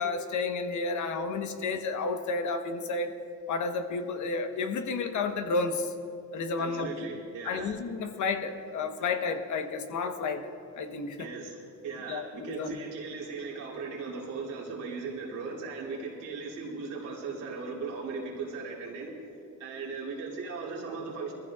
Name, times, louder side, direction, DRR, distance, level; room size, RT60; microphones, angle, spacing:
voice 1, 0.0-3.1 3.5-5.9 6.3-7.1 7.4-11.3 12.0-12.8, left 4 dB, 75° left, 6 dB, 1.1 m, -31 dB
voice 2, 6.6-7.7 11.2-11.6 11.8-19.1 19.6-21.3, right 4 dB, 90° right, -5 dB, 2.8 m, -38 dB
21.0 x 14.5 x 2.4 m, 2.6 s
cardioid pair, 90°, 30 cm